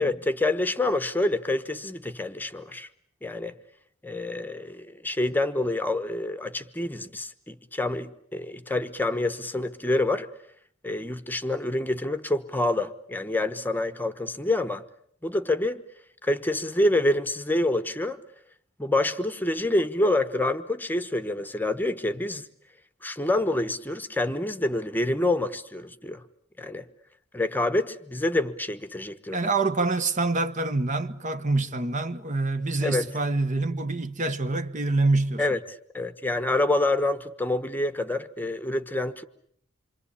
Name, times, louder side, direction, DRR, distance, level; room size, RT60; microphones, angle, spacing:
voice 1, 0.0-2.9 3.2-3.6 4.0-10.3 10.8-14.8 15.2-15.8 16.2-18.2 18.8-22.5 23.0-26.2 26.6-26.8 27.3-29.4 32.8-33.1 35.4-35.6 35.9-39.2, left 2 dB, 10° left, 1.1 m, -27 dB
voice 2, 29.3-35.4, right 3 dB, 35° right, 1.2 m, -26 dB
27.5 x 25.0 x 8.5 m
head